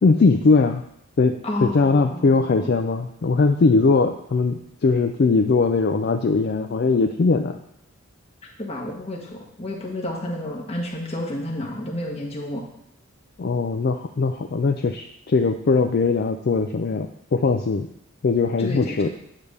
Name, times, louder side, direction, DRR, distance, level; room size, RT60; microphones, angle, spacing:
voice 1, 0.0-0.8 1.2-7.6 13.4-17.9 18.2-19.1, left 4 dB, 45° left, 5 dB, 0.4 m, -20 dB
voice 2, 1.4-2.7 8.6-12.6 18.6-19.1, left 1 dB, 30° left, -1 dB, 1.4 m, -30 dB
9.0 x 3.4 x 6.6 m, 0.77 s
head